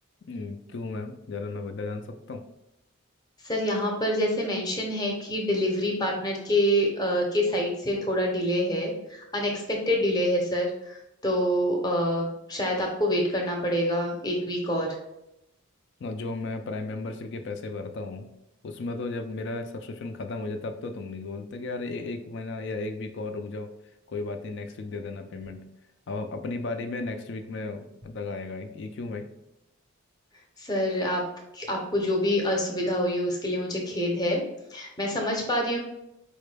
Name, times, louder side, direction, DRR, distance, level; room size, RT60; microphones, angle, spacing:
voice 1, 0.3-2.4 16.0-18.3 18.6-23.7 24.1-25.6 26.1-29.3, left 3 dB, 50° left, 6 dB, 0.3 m, -34 dB
voice 2, 3.4-14.9 30.6-31.2 31.5-34.4 34.7-35.8, equal, 20° left, 0 dB, 0.7 m, -26 dB
4.7 x 2.2 x 3.2 m, 0.85 s
head